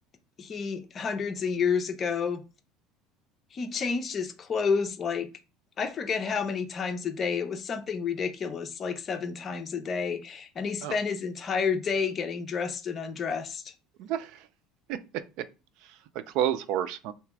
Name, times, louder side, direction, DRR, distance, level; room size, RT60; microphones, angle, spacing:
voice 1, 0.4-2.4 3.5-5.3 5.8-13.7, left 5 dB, 30° left, 0.7 m, -30 dB
voice 2, 14.0-14.5 14.9-15.0 15.8-17.1, right 11 dB, 65° right, 0.5 m, -30 dB
3.3 x 3.0 x 4.6 m
cardioid pair, 125°, 0 cm